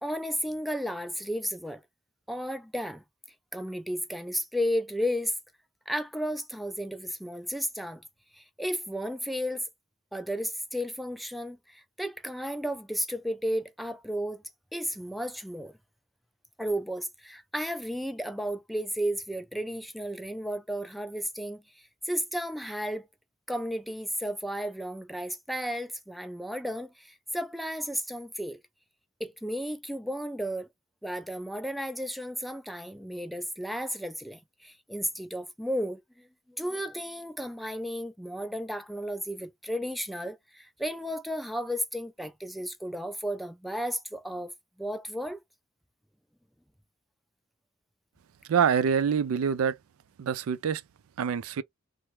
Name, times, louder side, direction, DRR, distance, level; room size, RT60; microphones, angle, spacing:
voice 1, 0.0-1.8 2.3-3.0 3.5-5.3 5.9-8.0 8.3-9.6 10.1-14.4 14.7-15.7 16.6-21.6 22.1-23.1 23.5-28.6 29.2-30.7 31.0-44.5 44.8-45.4, equal, ahead, 0.3 m, -33 dB
voice 2, 48.5-49.8 50.2-50.8 51.2-51.6, right 7 dB, 90° right, 0.4 m, -25 dB
3.3 x 2.1 x 3.0 m
head